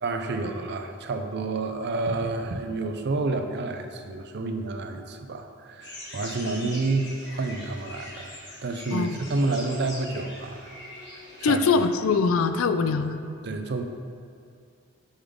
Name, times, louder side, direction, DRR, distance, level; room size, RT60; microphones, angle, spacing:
voice 1, 0.0-10.7 11.4-11.6 13.4-13.8, right 3 dB, 55° right, 6 dB, 0.5 m, -29 dB
sound 1, 5.8-11.8, left 1 dB, 60° left, 1.4 m, -42 dB
voice 2, 11.4-13.2, left 4 dB, 85° left, 10 dB, 0.4 m, -23 dB
6.9 x 5.6 x 3.6 m, 2.3 s
head